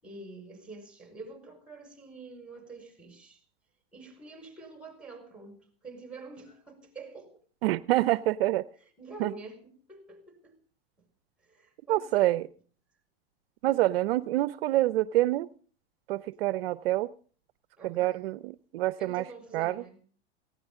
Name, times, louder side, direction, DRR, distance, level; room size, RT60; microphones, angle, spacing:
voice 1, 0.0-3.4 3.9-7.4 9.0-10.6 11.0-11.1 11.4-12.4 17.8-18.3 19.0-20.0, right 3 dB, 5° right, 5.1 m, -46 dB
voice 2, 7.6-8.6 9.2-9.3 11.9-12.4 13.6-15.5 16.1-17.1 17.8-19.2 19.5-19.8, right 16 dB, 70° right, 0.7 m, -26 dB
18.0 x 16.0 x 3.6 m
supercardioid pair, 125°, 31 cm